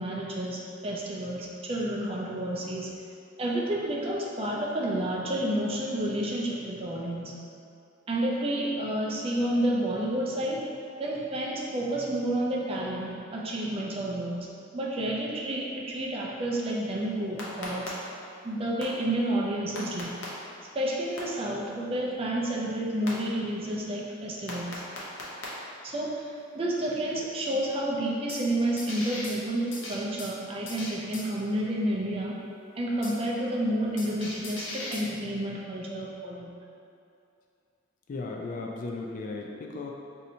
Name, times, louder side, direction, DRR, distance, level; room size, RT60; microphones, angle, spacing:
voice 1, 0.0-2.9 3.4-7.3 8.1-10.6 11.0-14.5 14.7-17.9 18.4-20.1 20.7-24.7 25.8-32.4 32.8-36.5, right 1 dB, 30° right, -3 dB, 0.4 m, -30 dB
sound 1, 17.4-17.9 18.8-18.9 19.8-20.2 21.2-21.3 23.1-23.2 24.5-25.4 28.3-28.4 28.8-29.4 29.7-30.3 30.7-31.3 33.0-33.2 34.0-35.1, left 2 dB, 70° left, 0.7 m, -38 dB
voice 2, 38.1-39.9, left 3 dB, 45° left, 0 dB, 0.3 m, -36 dB
2.7 x 2.6 x 4.2 m, 2.5 s
head